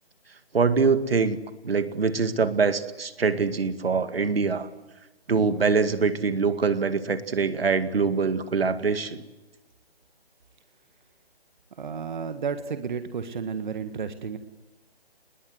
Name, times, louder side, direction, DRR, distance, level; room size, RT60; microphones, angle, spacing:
voice 1, 0.5-4.7 5.3-9.2, right 5 dB, 70° right, 11 dB, 2.1 m, -24 dB
voice 2, 11.8-14.4, right 6 dB, 50° right, 9 dB, 1.7 m, -32 dB
27.5 x 21.0 x 8.0 m, 1.1 s
hypercardioid pair, 160°, 31 cm